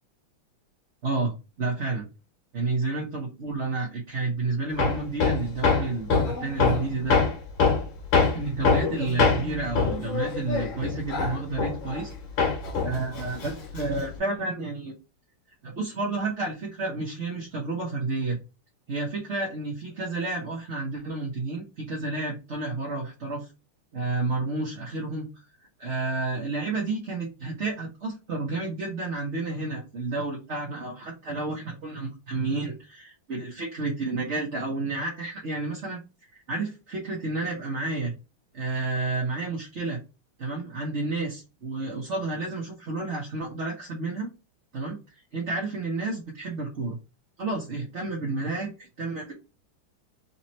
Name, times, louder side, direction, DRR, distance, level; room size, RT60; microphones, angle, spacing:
voice 1, 1.0-2.1 2.5-7.2 8.3-12.1 12.8-14.9 15.6-18.4 18.9-23.5 23.9-25.3 25.8-36.0 36.3-38.1 38.5-40.0 40.4-44.3 44.7-45.0 45.3-47.0 47.4-49.3, right 3 dB, 45° right, -2 dB, 1.1 m, -30 dB
Hammer, 4.8-12.1 12.4-14.1, left 4 dB, 70° left, 1.9 m, -24 dB
4.1 x 3.0 x 4.2 m, 0.29 s
omnidirectional pair, 2.3 m